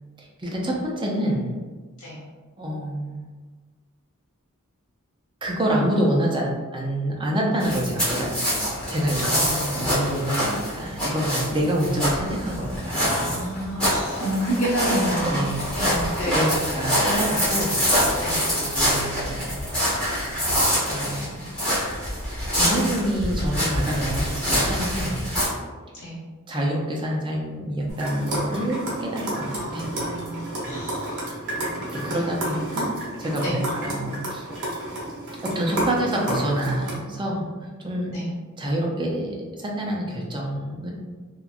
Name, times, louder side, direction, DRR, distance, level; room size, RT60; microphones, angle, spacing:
voice 1, 0.2-1.6 2.6-3.2 5.4-13.3 15.2-16.0 16.2-18.3 18.6-19.6 20.9-21.5 22.5-25.3 26.5-29.9 30.4-30.7 31.9-32.9 33.2-34.5 35.4-37.5 37.8-38.2 38.6-40.9, right 1 dB, 20° right, -2 dB, 0.4 m, -27 dB
sound 1, 7.6-25.5, equal, 5° left, 1.1 m, -25 dB
voice 2, 9.2-10.1 13.0-15.4 15.8-16.5 18.2-18.4 25.9-26.2 29.5-31.2 33.4-33.6 38.1-38.3, right 1 dB, 70° left, -7 dB, 1.1 m, -29 dB
sound 2, 27.9-36.9, right 1 dB, 55° right, 0.9 m, -31 dB
2.9 x 2.3 x 2.4 m, 1.4 s
head